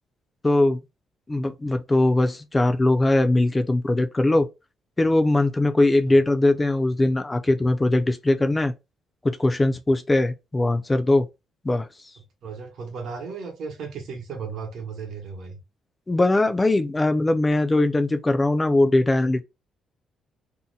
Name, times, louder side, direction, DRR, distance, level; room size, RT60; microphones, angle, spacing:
voice 1, 0.4-0.8 1.3-4.5 5.0-8.7 9.2-11.3 11.6-11.9 16.1-19.4, left 2 dB, 15° left, 0.4 m, -20 dB
voice 2, 12.4-15.6, right 5 dB, 65° right, 0.9 m, -35 dB
2.7 x 2.1 x 3.8 m
cardioid pair, 145°, 0 cm